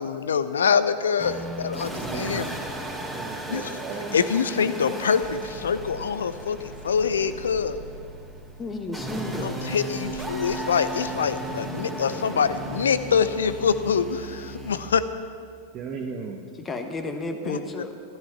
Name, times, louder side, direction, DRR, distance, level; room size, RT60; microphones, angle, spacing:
voice 1, 0.0-2.4 3.5-3.6 4.1-7.8 9.4-15.0 17.4-17.6, left 6 dB, 65° left, 13 dB, 0.6 m, -25 dB
sound 1, 1.2-14.9, right 1 dB, 5° right, 2.5 m, -35 dB
voice 2, 2.0-2.6 3.1-4.2 9.1-9.6 15.7-16.6, right 5 dB, 35° right, 0 dB, 1.1 m, -36 dB
voice 3, 8.6-9.5 16.6-17.9, left 2 dB, 20° left, 5 dB, 1.3 m, -32 dB
14.5 x 13.0 x 5.8 m, 2.2 s
figure-of-eight pair, 90°, 0 cm